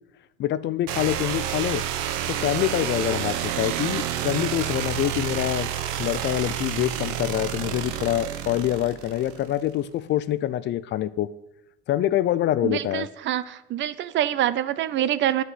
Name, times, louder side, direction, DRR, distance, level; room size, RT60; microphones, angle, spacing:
voice 1, 0.4-1.8 2.3-5.7 6.0-11.3 11.9-13.1, left 13 dB, 40° left, 16 dB, 0.4 m, -25 dB
sound 1, 0.9-9.6, right 10 dB, 70° right, 1.1 m, -29 dB
voice 2, 12.6-15.4, right 11 dB, 40° right, 16 dB, 0.5 m, -25 dB
8.5 x 6.0 x 7.8 m, 0.91 s
supercardioid pair, 120°, 29 cm